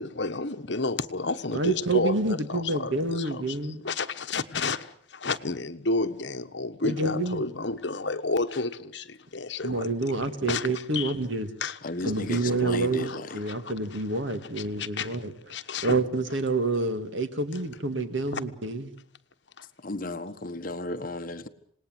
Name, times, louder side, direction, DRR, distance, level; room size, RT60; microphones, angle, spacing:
voice 1, 0.0-9.9 10.2-11.1 11.6-12.2 12.7-13.2 13.5-14.0 14.8-15.2 15.5-15.9 18.3-18.4 19.6-19.7, left 3 dB, 65° left, 1.3 m, -31 dB
voice 2, 1.5-3.8 6.8-7.5 9.6-11.5 12.1-15.3 15.8-18.9, right 2 dB, 75° right, 2.2 m, -28 dB
voice 3, 11.8-13.4 19.8-21.5, left 2 dB, 45° left, 1.3 m, -34 dB
27.0 x 19.5 x 7.8 m
head